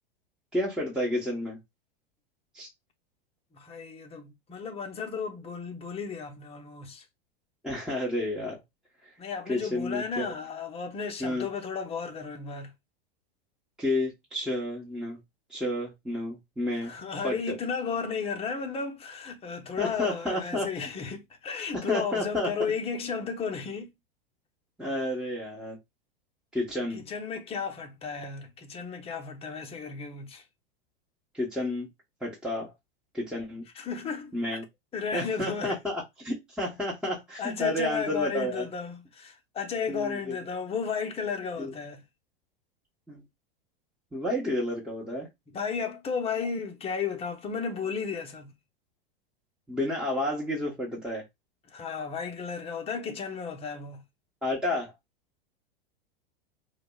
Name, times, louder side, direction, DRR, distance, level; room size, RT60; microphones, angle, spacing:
voice 1, 0.5-1.6 2.5-2.7 7.6-8.6 9.5-10.3 11.2-11.5 13.8-15.2 15.5-16.9 17.2-17.6 19.8-20.7 21.9-22.5 24.8-25.8 26.5-27.0 31.3-31.9 32.2-32.7 33.1-33.6 34.3-34.6 35.1-38.7 39.9-40.3 41.6-41.7 43.1-43.2 44.1-45.3 49.7-51.2 54.4-54.9, left 1 dB, 5° right, 1.1 m, -30 dB
voice 2, 3.5-7.0 9.2-12.7 16.8-23.9 26.9-30.4 33.7-34.6 34.9-35.8 37.4-42.0 45.5-48.5 51.7-54.0, left 5 dB, 20° left, 0.7 m, -34 dB
4.7 x 2.2 x 2.3 m
hypercardioid pair, 120°, 30 cm